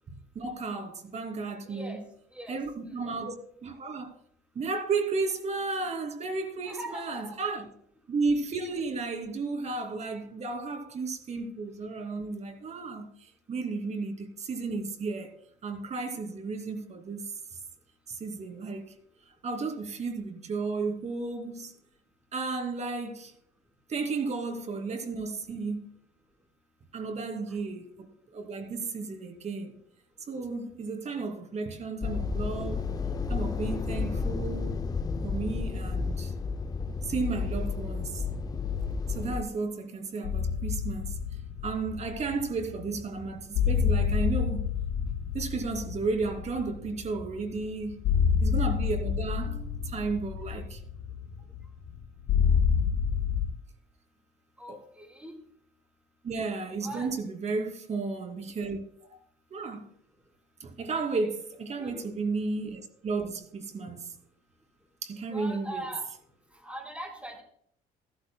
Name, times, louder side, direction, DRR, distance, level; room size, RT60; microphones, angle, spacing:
voice 1, 0.3-2.1 2.5-3.3 3.6-4.1 4.5-7.7 8.1-15.3 15.6-17.4 18.1-18.9 19.4-21.7 22.3-23.3 23.9-25.9 26.9-29.7 30.3-32.9 33.3-34.8 35.2-36.3 37.0-38.2 39.1-41.2 41.6-44.7 45.3-48.0 48.4-50.8 54.7-54.8 56.2-59.2 59.5-59.9 60.6-64.1 65.0-65.9, right 4 dB, 40° right, 2.6 m, -33 dB
voice 2, 1.7-2.0 2.3-2.6 2.8-3.0 6.6-7.6 50.3-50.4 54.6-55.4 56.8-57.1 61.8-62.1 65.3-66.0 66.6-67.4, right 1 dB, 5° right, 4.2 m, -41 dB
sound 1, 32.0-39.4, left 4 dB, 20° left, 0.5 m, -31 dB
sound 2, 40.2-53.5, left 7 dB, 80° left, 3.2 m, -29 dB
15.0 x 13.5 x 2.2 m
cardioid pair, 110°, 17 cm